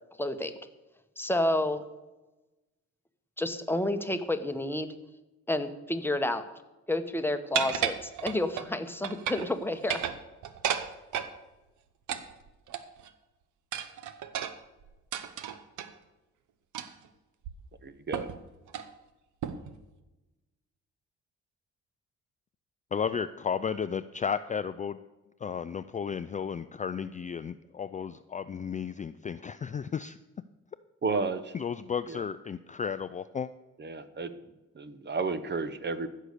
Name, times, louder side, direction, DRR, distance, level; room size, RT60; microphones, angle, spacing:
voice 1, 0.2-0.5 1.2-1.8 3.4-4.9 5.5-6.4 6.9-10.0, left 1 dB, 5° left, 8 dB, 1.0 m, -30 dB
sound 1, 7.5-8.7 9.0-9.5 9.8-11.3 12.1-13.1 13.7-15.9 16.7-17.1 17.4-17.5 18.1-18.4 18.7-18.9 19.4-19.8, right 9 dB, 75° right, 1.0 m, -33 dB
voice 2, 17.8-18.3 31.0-31.5 32.1-32.2 33.8-34.3 34.7-36.1, right 4 dB, 35° right, 12 dB, 0.9 m, -32 dB
voice 3, 22.9-25.0 25.4-30.2 31.5-33.5, left 7 dB, 25° left, 12 dB, 0.4 m, -33 dB
15.0 x 6.5 x 6.7 m, 1.1 s
cardioid pair, 90°, 30 cm